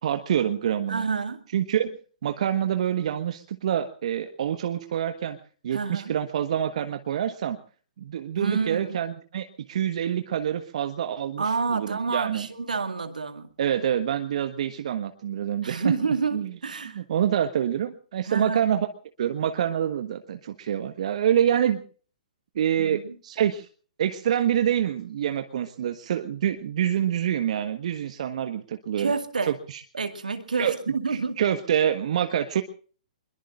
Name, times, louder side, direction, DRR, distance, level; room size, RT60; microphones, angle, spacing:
voice 1, 0.0-1.0 1.5-2.0 2.2-5.4 5.6-7.6 8.0-12.5 13.6-15.9 16.3-16.5 16.9-18.9 19.2-21.8 22.5-23.7 24.0-29.1 29.4-29.8 30.6-30.8 31.4-32.6, right 10 dB, 55° right, 1.4 m, -26 dB
voice 2, 0.9-1.4 5.7-6.1 8.4-9.0 11.4-13.5 15.6-17.0 18.2-18.6 22.8-23.2 29.0-29.5 29.9-31.4, right 4 dB, 75° right, 2.2 m, -28 dB
26.0 x 22.0 x 2.5 m
figure-of-eight pair, 120°, 4 cm